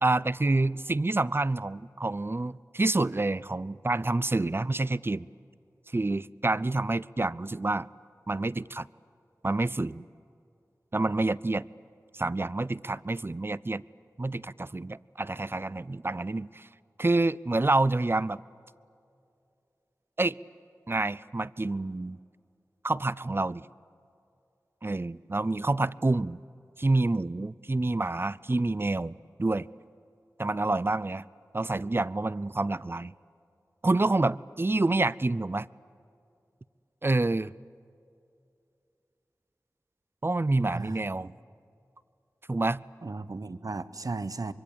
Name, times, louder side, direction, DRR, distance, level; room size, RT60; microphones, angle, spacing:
voice 1, 0.0-5.3 5.9-7.9 8.3-8.9 9.4-10.0 10.9-11.7 12.1-13.8 14.2-16.7 17.0-18.4 20.2-20.4 20.9-22.2 22.8-23.7 24.8-26.4 26.8-29.7 30.4-31.2 31.5-33.1 33.8-35.7 37.0-37.5 40.2-41.3 42.5-42.8, right 2 dB, 35° right, 19 dB, 0.5 m, -28 dB
voice 2, 40.7-41.3 43.0-44.5, right 3 dB, 65° right, 13 dB, 0.9 m, -36 dB
24.5 x 23.5 x 8.5 m, 2.6 s
wide cardioid pair, 40°, 7 cm